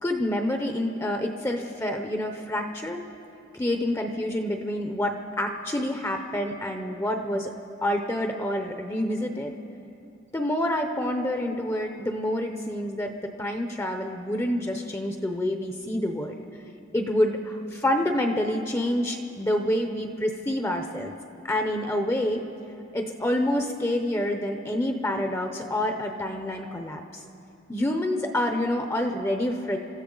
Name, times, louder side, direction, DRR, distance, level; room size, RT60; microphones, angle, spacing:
voice 1, 0.0-3.0 3.5-7.5 7.8-9.6 10.3-16.3 16.9-21.1 21.4-22.4 22.9-27.2 27.7-29.8, left 1 dB, 15° left, 5 dB, 0.7 m, -27 dB
26.0 x 14.0 x 3.9 m, 2.7 s
head